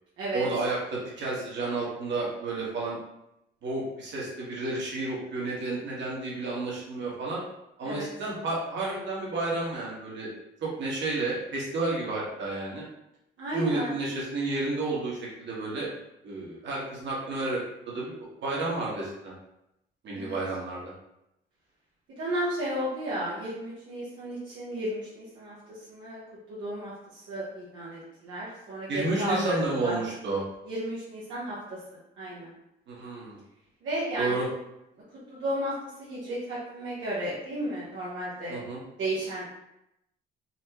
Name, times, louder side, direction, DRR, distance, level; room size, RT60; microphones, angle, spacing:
voice 1, 0.3-3.0 3.6-7.4 7.8-10.3 10.6-12.8 13.5-15.9 16.2-17.6 17.9-18.1 18.4-19.3 20.0-20.9 28.9-30.4 32.9-33.4 34.2-34.5 38.5-38.8, right 2 dB, 65° right, -5 dB, 1.3 m, -31 dB
voice 2, 13.4-13.9 20.1-20.4 22.2-26.2 26.5-30.0 30.6-31.6 32.2-32.5 33.8-34.3 35.3-38.6 39.0-39.4, right 1 dB, 80° right, -8 dB, 0.9 m, -33 dB
4.2 x 2.1 x 2.9 m, 0.86 s
cardioid pair, 90°, 20 cm